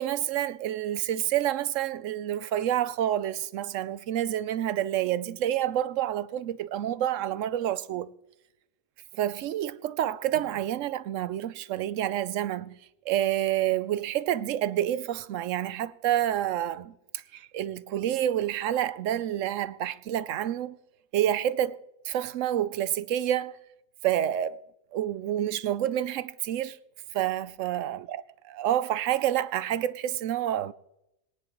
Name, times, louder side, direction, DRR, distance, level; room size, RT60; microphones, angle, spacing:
voice 1, 0.0-8.1 9.1-12.8 13.1-20.8 21.1-23.6 24.0-24.6 24.9-26.8 27.1-30.7, right 11 dB, 70° right, 0.9 m, -28 dB
21.5 x 9.7 x 3.0 m
omnidirectional pair, 1.5 m